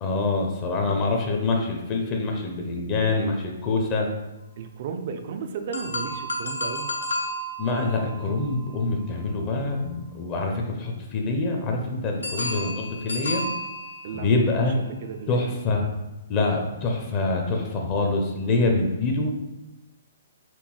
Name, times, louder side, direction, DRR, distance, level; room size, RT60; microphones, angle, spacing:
voice 1, 0.0-4.1 7.6-13.4 14.1-14.8 15.3-15.9 16.3-19.3, left 3 dB, 30° left, 2 dB, 0.6 m, -25 dB
voice 2, 4.6-6.9 14.0-15.5, right 6 dB, 45° right, 5 dB, 0.4 m, -34 dB
sound 1, 5.7-9.8 12.2-14.6, equal, 85° left, 0.5 m, -33 dB
4.4 x 2.7 x 3.1 m, 1.0 s
figure-of-eight pair, 125°, 0 cm